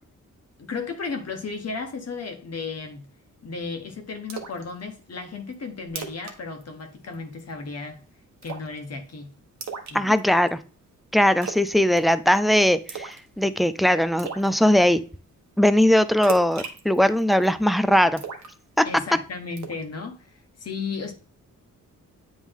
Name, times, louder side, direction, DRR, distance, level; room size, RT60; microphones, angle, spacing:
voice 1, 0.6-3.1 3.4-8.0 8.4-9.3 9.9-10.2 18.8-20.3 20.6-21.1, left 4 dB, 50° left, 1.3 m, -34 dB
Splash splatter, 4.3-4.6 5.0-5.1 5.5-5.6 5.9-6.4 6.6-6.8 7.1-7.5 8.4-8.8 9.6-10.5 11.4-11.7 12.0-12.4 12.9-13.3 13.6-13.7 14.2-14.5 16.2-17.5 18.2-19.1 19.6-19.8, right 6 dB, 60° right, 1.2 m, -36 dB
voice 2, 9.9-10.6 11.1-15.0 15.6-18.2 18.8-18.9, left 1 dB, ahead, 0.3 m, -20 dB
9.0 x 3.1 x 3.6 m
wide cardioid pair, 115°, 32 cm